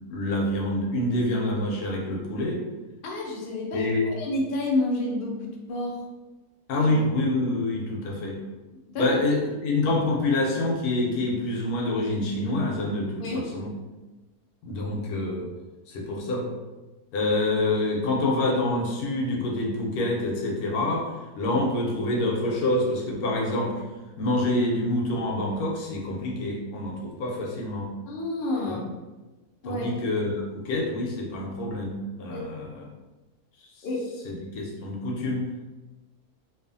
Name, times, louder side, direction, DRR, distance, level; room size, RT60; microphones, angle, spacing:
voice 1, 0.1-2.6 3.7-4.0 6.7-8.4 9.0-13.7 14.6-15.5 15.9-16.4 17.1-21.0 21.4-23.8 24.2-27.9 28.7-28.8 29.6-32.9 33.8-33.9 34.2-35.4, left 2 dB, 80° left, -1 dB, 1.1 m, -26 dB
voice 2, 3.0-6.0 6.8-6.9 8.9-9.1 13.2-13.5 28.1-28.9 29.6-29.9 32.3-32.4 33.8-34.1, left 2 dB, 65° left, -2 dB, 0.5 m, -29 dB
2.6 x 2.4 x 2.5 m, 1.2 s
omnidirectional pair, 1.6 m